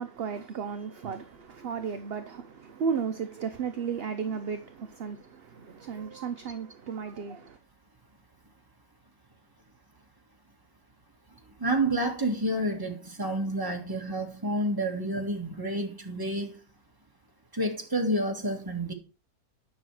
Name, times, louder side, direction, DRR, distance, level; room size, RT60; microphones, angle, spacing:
voice 1, 0.0-7.6, right 6 dB, 50° right, 0.8 m, -34 dB
voice 2, 11.6-16.6 17.6-18.9, right 1 dB, 15° right, 1.8 m, -29 dB
10.0 x 6.1 x 4.8 m
omnidirectional pair, 1.6 m